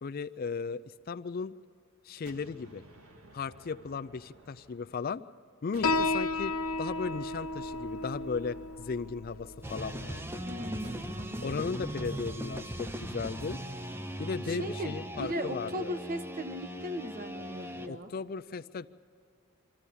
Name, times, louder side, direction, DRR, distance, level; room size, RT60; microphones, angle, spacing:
voice 1, 0.0-1.5 2.0-2.8 3.3-5.2 5.6-10.4 11.4-13.6 14.2-15.9 17.9-18.9, left 5 dB, 45° left, 12 dB, 0.4 m, -36 dB
sound 1, 2.3-5.3 5.7-10.0 10.8-12.9, right 1 dB, 85° right, 1.8 m, -55 dB
Piano, 5.8-12.9, left 3 dB, 80° left, 0.9 m, -35 dB
sound 2, 9.6-17.9, equal, 10° right, 0.5 m, -39 dB
voice 2, 10.4-11.6 12.0-12.4 14.5-18.1, equal, 40° right, 8 dB, 1.0 m, -38 dB
25.0 x 13.5 x 8.4 m, 2.8 s
head